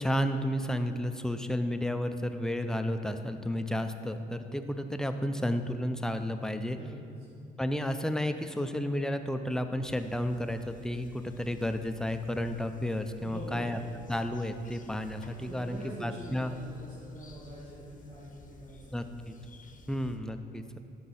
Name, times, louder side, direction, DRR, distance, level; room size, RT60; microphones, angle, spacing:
voice 1, 0.0-6.8 7.6-13.8 14.1-16.5 18.9-19.4 19.9-20.8, equal, 5° left, 8 dB, 0.5 m, -32 dB
voice 2, 6.7-7.5 13.1-13.7 15.4-19.7, right 1 dB, 80° right, -10 dB, 2.1 m, -45 dB
sound 1, 9.8-20.2, left 4 dB, 40° left, 0.8 m, -54 dB
12.5 x 4.7 x 4.1 m, 2.4 s
cardioid pair, 85°, 20 cm